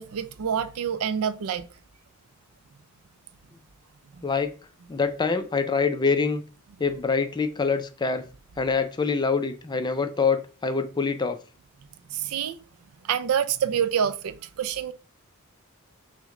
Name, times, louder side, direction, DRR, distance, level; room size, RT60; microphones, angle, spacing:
voice 1, 0.0-1.7 4.2-4.3 12.1-12.6 13.0-14.9, right 8 dB, 70° right, 0.4 m, -27 dB
voice 2, 4.2-4.5 4.9-6.4 6.8-8.3 8.6-11.4, left 4 dB, 20° left, 0.4 m, -25 dB
6.0 x 2.2 x 3.6 m
head